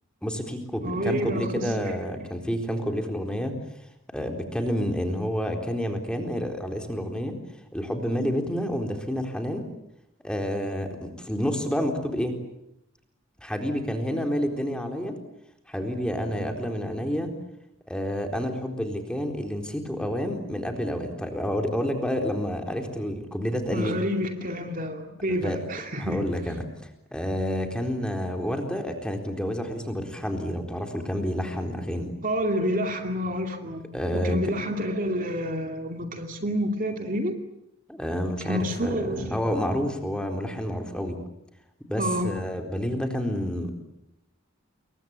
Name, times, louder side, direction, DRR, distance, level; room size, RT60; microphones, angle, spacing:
voice 1, 0.2-3.5 4.1-7.4 7.7-9.6 10.2-12.4 13.4-15.1 15.7-17.4 17.9-24.0 25.4-25.6 26.0-26.7 27.1-32.1 33.9-34.4 37.9-41.2 41.9-43.8, equal, 5° left, 4 dB, 4.0 m, -29 dB
voice 2, 0.8-2.0 23.7-26.2 32.2-33.8 34.1-37.4 38.4-39.4 42.0-42.3, equal, 40° right, 4 dB, 2.5 m, -29 dB
28.5 x 23.0 x 8.6 m, 0.80 s
head